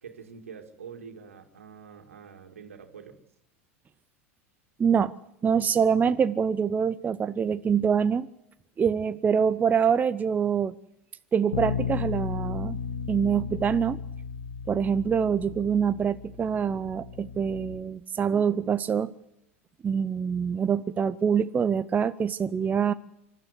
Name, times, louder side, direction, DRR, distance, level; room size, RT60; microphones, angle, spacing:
voice 1, 0.0-3.2, right 6 dB, 80° right, 5 dB, 2.6 m, -45 dB
voice 2, 4.8-5.1 5.4-8.3 8.8-10.7 11.3-12.8 13.1-14.0 14.7-19.1 19.8-22.9, right 7 dB, 20° right, 13 dB, 0.7 m, -25 dB
Bass guitar, 11.5-17.8, left 6 dB, 75° left, 1.6 m, -34 dB
26.5 x 12.5 x 8.2 m, 0.85 s
hypercardioid pair, 85°, 7 cm